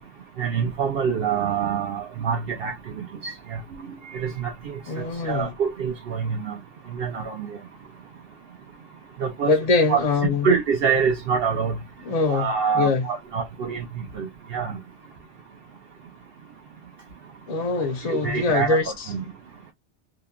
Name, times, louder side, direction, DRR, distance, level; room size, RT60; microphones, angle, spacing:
voice 1, 0.4-3.6 4.1-6.6 6.9-7.5 9.2-9.5 9.9-10.0 10.4-11.8 12.3-14.8 18.1-19.3, right 6 dB, 65° right, 0.7 m, -26 dB
voice 2, 4.9-5.5 9.4-10.5 12.1-13.1 17.5-19.1, left 4 dB, 45° left, 0.5 m, -23 dB
2.9 x 2.1 x 2.2 m
omnidirectional pair, 1.2 m